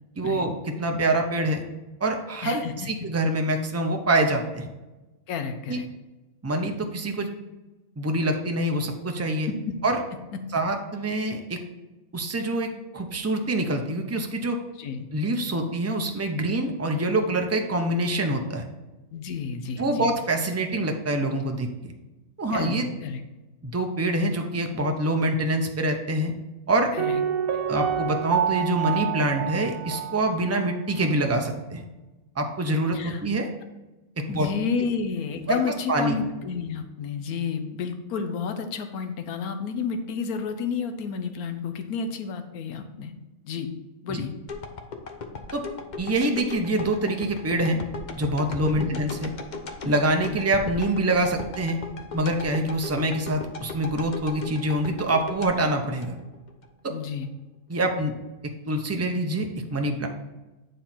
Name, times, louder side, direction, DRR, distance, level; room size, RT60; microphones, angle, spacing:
voice 1, 0.2-1.6 2.0-4.7 5.7-5.8 6.4-7.3 8.0-9.5 9.8-10.0 10.5-11.6 12.1-14.6 15.1-18.7 19.8-21.7 22.4-22.9 23.6-26.3 26.7-26.9 27.7-31.8 32.4-33.5 34.2-34.5 35.5-36.2 44.1-44.2 45.5-45.6 46.0-47.8 48.2-49.3 49.8-51.8 52.1-56.2 56.8-56.9 57.7-58.1 58.7-60.1, right 1 dB, 25° right, 3 dB, 0.3 m, -25 dB
voice 2, 2.4-2.7 5.3-5.9 9.5-9.8 10.3-10.4 14.8-15.1 19.1-20.1 22.5-23.2 26.9-27.2 27.5-27.6 32.9-33.2 34.3-43.1 43.4-43.7 44.0-44.3 48.8-49.0 56.9-57.3, left 6 dB, 80° left, 7 dB, 1.3 m, -31 dB
Piano, 27.0-30.7 31.0-31.1, right 9 dB, 80° right, 1.1 m, -27 dB
sound 1, 44.5-56.7 57.1-57.2, left 4 dB, 50° left, 0.6 m, -37 dB
9.3 x 3.8 x 4.3 m, 1.1 s
omnidirectional pair, 1.5 m